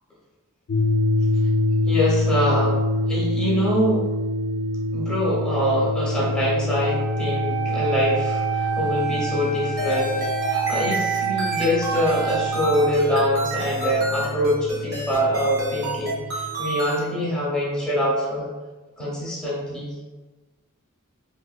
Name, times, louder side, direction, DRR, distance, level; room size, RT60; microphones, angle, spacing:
sound 1, 0.7-16.5, left 2 dB, 65° left, 0.4 m, -26 dB
voice 1, 1.9-2.8 3.1-4.1 4.9-18.5 19.0-19.9, equal, 5° left, -6 dB, 0.9 m, -24 dB
Wind instrument woodwind instrument, 6.8-12.7, right 8 dB, 35° right, 0.4 m, -28 dB
sound 2, 9.8-17.0, right 1 dB, 80° right, 1.3 m, -29 dB
3.3 x 3.1 x 2.2 m, 1.2 s
head